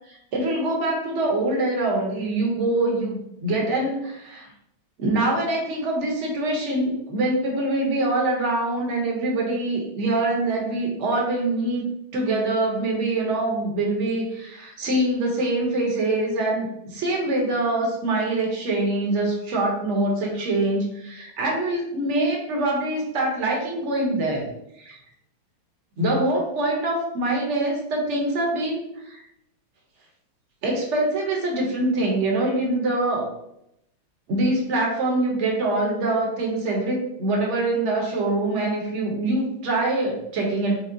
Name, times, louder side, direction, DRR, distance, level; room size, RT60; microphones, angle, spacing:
voice 1, 0.3-4.5 5.0-11.8 12.1-24.5 24.8-25.0 26.0-28.8 29.0-29.2 30.6-33.3 34.3-40.8, right 2 dB, 45° right, -1 dB, 1.0 m, -24 dB
5.1 x 2.0 x 3.8 m, 0.80 s
omnidirectional pair, 2.3 m